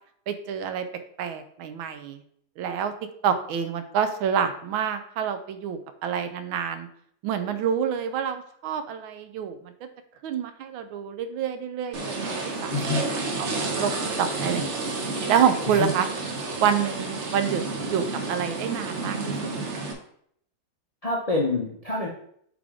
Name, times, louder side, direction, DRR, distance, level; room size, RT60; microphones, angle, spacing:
voice 1, 0.3-0.9 1.2-2.2 2.6-2.9 3.2-6.9 7.2-9.7 10.2-13.0 13.4-13.5 13.8-13.9 14.2-14.6 15.3-16.1 16.6-19.5, right 8 dB, 90° right, 9 dB, 1.5 m, -27 dB
sound 1, 11.9-19.9, right 3 dB, 50° right, 1.0 m, -30 dB
voice 2, 12.7-13.0 15.7-15.9 21.0-22.1, left 3 dB, 60° left, -2 dB, 0.3 m, -26 dB
8.3 x 3.6 x 3.7 m, 0.66 s
omnidirectional pair, 2.1 m